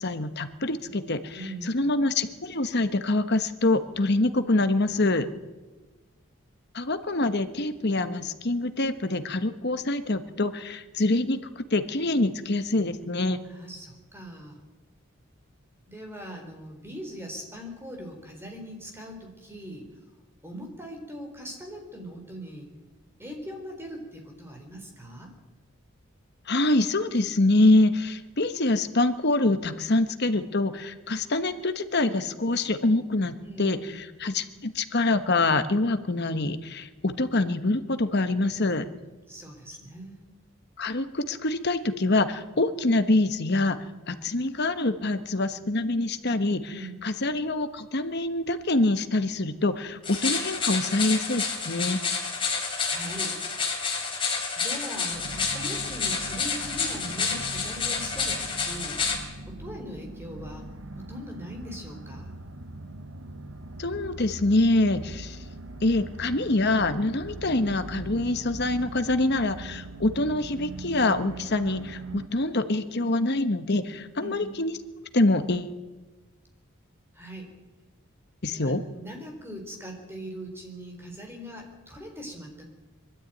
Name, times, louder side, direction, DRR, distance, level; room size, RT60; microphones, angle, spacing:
voice 1, 0.0-1.4 1.7-5.3 6.7-13.4 26.5-33.8 34.2-38.9 40.8-43.8 44.1-46.7 47.0-52.0 63.8-65.4 65.8-74.8 75.1-75.8 78.4-78.8, left 2 dB, 55° left, 10 dB, 1.2 m, -25 dB
voice 2, 1.3-1.8 13.4-14.6 15.9-20.0 20.4-22.7 23.2-25.4 33.4-34.0 39.3-40.3 46.6-47.0 52.8-53.4 54.6-59.1 59.5-60.7 61.0-62.3 74.2-74.6 77.1-77.5 78.5-82.7, equal, 10° right, 3 dB, 3.9 m, -41 dB
sound 1, 50.0-59.2, left 5 dB, 25° left, 3.7 m, -29 dB
sound 2, 55.1-72.3, right 2 dB, 75° right, 1.3 m, -41 dB
22.5 x 13.0 x 9.2 m, 1.2 s
head